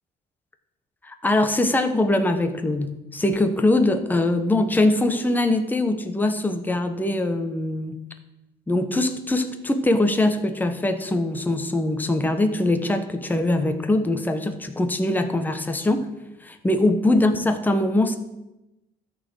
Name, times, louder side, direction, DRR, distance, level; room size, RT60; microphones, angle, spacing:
voice 1, 1.0-8.0 8.7-16.1 16.4-18.2, left 2 dB, 10° left, 7 dB, 1.0 m, -22 dB
13.0 x 4.4 x 7.7 m, 0.96 s
cardioid pair, 110°, 17 cm